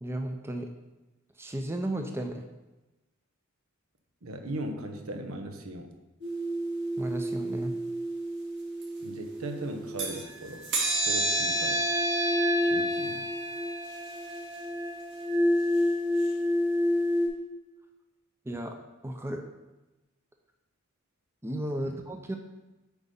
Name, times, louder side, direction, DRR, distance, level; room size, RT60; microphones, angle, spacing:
voice 1, 0.0-0.7 1.4-2.4 7.0-7.7 18.5-18.8 19.0-19.5 21.4-22.4, right 1 dB, 10° right, 4 dB, 0.6 m, -34 dB
voice 2, 4.2-5.9 9.0-10.7 11.1-11.8 12.6-13.3 21.8-21.9, right 1 dB, 85° right, 6 dB, 1.0 m, -38 dB
sound 1, 6.2-10.2 10.6-17.3, equal, 60° right, 2.6 m, -29 dB
8.2 x 4.9 x 5.4 m, 1.1 s
head